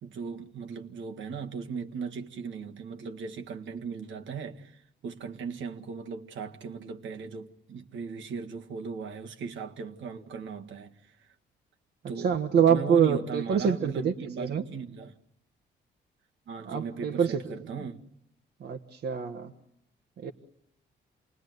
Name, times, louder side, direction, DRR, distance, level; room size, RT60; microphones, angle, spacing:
voice 1, 0.0-11.4 12.1-15.1 16.5-18.1, right 5 dB, 70° right, 1.9 m, -38 dB
voice 2, 12.2-14.6 16.6-17.9 18.6-19.5 20.2-20.3, right 7 dB, 55° right, 1.5 m, -26 dB
28.0 x 20.0 x 9.4 m
cardioid pair, 90°, 20 cm